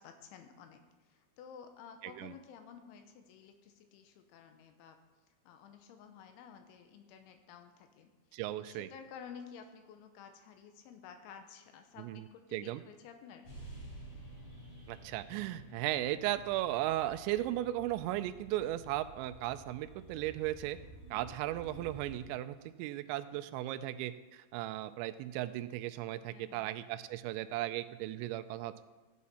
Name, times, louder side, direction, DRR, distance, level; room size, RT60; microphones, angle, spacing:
voice 1, 0.0-5.0 5.4-8.1 8.6-13.5 23.3-23.5 26.3-26.7, left 7 dB, 85° left, 6 dB, 3.3 m, -53 dB
voice 2, 2.0-2.3 8.3-8.9 12.0-12.8 14.9-20.8 21.1-28.8, right 14 dB, 85° right, 11 dB, 2.8 m, -36 dB
sound 1, 13.4-22.2, right 1 dB, 45° left, 4.5 m, -52 dB
15.0 x 8.4 x 4.2 m, 1.2 s
omnidirectional pair, 5.5 m